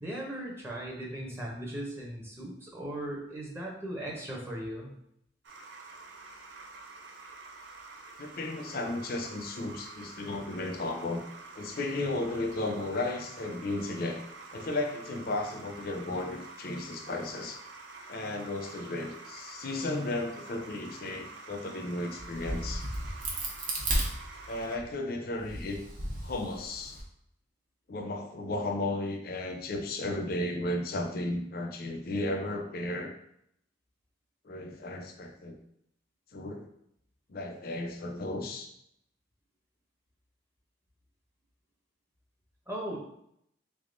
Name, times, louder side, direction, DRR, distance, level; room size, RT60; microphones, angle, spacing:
voice 1, 0.0-4.9 42.7-43.0, right 1 dB, 15° right, -3 dB, 0.7 m, -38 dB
sound 1, 5.4-24.8, right 3 dB, 75° right, 0.5 m, -48 dB
voice 2, 8.2-11.2 11.6-14.2 14.5-17.6 18.1-22.8 24.5-25.8 26.2-27.0 27.9-33.1 34.4-35.6 36.3-36.7 37.3-38.7, left 2 dB, 55° left, 5 dB, 0.5 m, -34 dB
Crack, 22.2-24.8 25.4-27.0, right 1 dB, 45° right, 0.8 m, -34 dB
3.6 x 3.4 x 2.5 m, 0.73 s
head